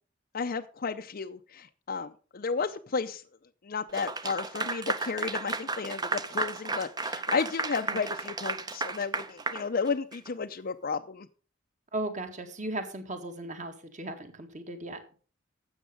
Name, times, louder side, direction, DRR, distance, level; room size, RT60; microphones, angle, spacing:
voice 1, 0.3-3.2 3.6-11.3, left 5 dB, 45° left, 6 dB, 0.6 m, -33 dB
Clapping / Applause, 3.9-10.3, right 3 dB, 20° right, 0.7 m, -33 dB
voice 2, 11.9-15.0, right 2 dB, 40° right, 7 dB, 1.8 m, -36 dB
12.5 x 8.1 x 5.2 m, 0.39 s
head